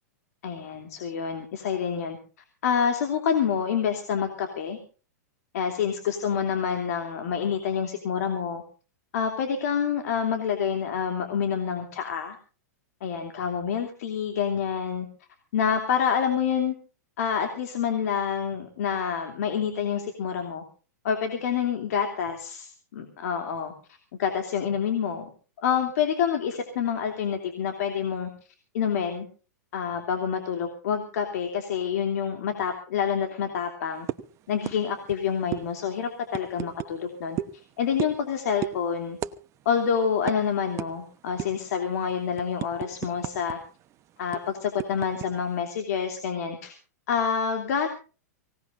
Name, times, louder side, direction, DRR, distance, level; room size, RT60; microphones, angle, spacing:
voice 1, 0.4-2.2 2.6-4.8 5.5-8.6 9.1-12.4 13.0-15.1 15.5-16.7 17.2-20.6 21.0-25.3 25.6-28.3 28.7-29.3 29.7-34.1 34.5-37.4 37.8-39.2 39.6-43.6 44.2-46.7 47.1-47.9, left 7 dB, 65° left, 4 dB, 2.9 m, -27 dB
sound 1, 34.1-34.3 34.7-34.8 35.0-35.2 35.5-35.6 36.3-36.9 37.4-37.6 38.0-38.3 38.6-38.8 39.2-39.4 39.6-39.8 40.3-40.4 40.8-40.9 41.4-41.7 42.1-43.5 43.8-43.9 44.3-45.3, right 12 dB, 35° right, 1.0 m, -32 dB
24.5 x 18.0 x 2.6 m, 0.37 s
hypercardioid pair, 115°, 9 cm